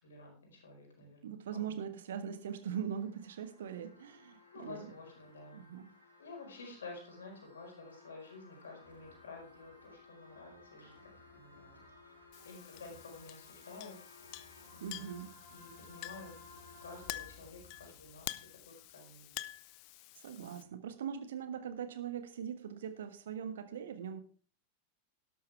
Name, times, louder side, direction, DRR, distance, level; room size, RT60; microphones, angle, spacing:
voice 1, 0.0-1.8 4.5-5.7 6.2-10.9 11.3-11.8 12.4-14.0 14.7-15.1 15.5-16.3 16.8-19.4 20.4-20.7, left 3 dB, 65° left, 1 dB, 4.8 m, -51 dB
voice 2, 1.2-4.9 5.5-5.9 14.8-15.3 20.1-24.2, right 8 dB, 60° right, 10 dB, 1.4 m, -41 dB
sound 1, 1.9-18.9, left 2 dB, 80° left, 5.5 m, -59 dB
Chink clink, 12.3-20.6, left 19 dB, 45° left, 0.6 m, -48 dB
12.0 x 12.0 x 3.4 m, 0.40 s
figure-of-eight pair, 90°, 0 cm